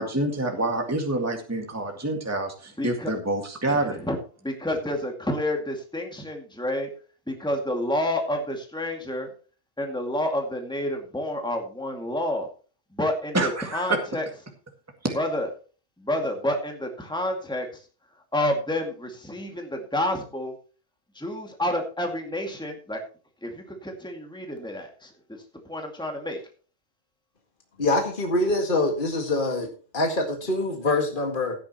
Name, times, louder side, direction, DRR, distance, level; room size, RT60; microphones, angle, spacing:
voice 1, 0.0-4.0 13.3-14.0 15.0-15.2, right 2 dB, 15° right, 3 dB, 1.9 m, -27 dB
voice 2, 2.8-3.1 3.7-4.2 4.4-6.9 7.3-9.3 9.8-12.5 12.9-14.2 15.1-15.5 16.0-17.7 18.3-20.5 21.2-23.0 23.4-25.1 25.7-26.4, left 1 dB, 5° left, 2 dB, 2.2 m, -29 dB
voice 3, 27.8-29.7 29.9-31.5, left 2 dB, 45° left, 2 dB, 2.1 m, -24 dB
16.0 x 9.9 x 3.0 m, 0.37 s
omnidirectional pair, 1.2 m